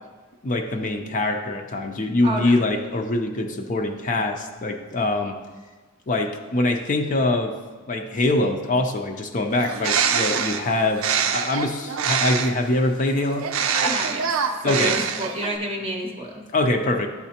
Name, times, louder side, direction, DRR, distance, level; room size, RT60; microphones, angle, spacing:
voice 1, 0.4-5.4 6.1-7.5 7.9-11.1 11.3-13.5 14.6-15.0 16.5-17.1, left 2 dB, 40° left, 4 dB, 0.5 m, -23 dB
voice 2, 2.2-2.6 13.7-14.3 14.6-16.4, right 1 dB, 25° right, 0 dB, 0.7 m, -29 dB
Bird, 9.5-12.7 13.4-15.6, right 7 dB, 80° right, 0.5 m, -25 dB
11.5 x 4.1 x 2.8 m, 1.3 s
head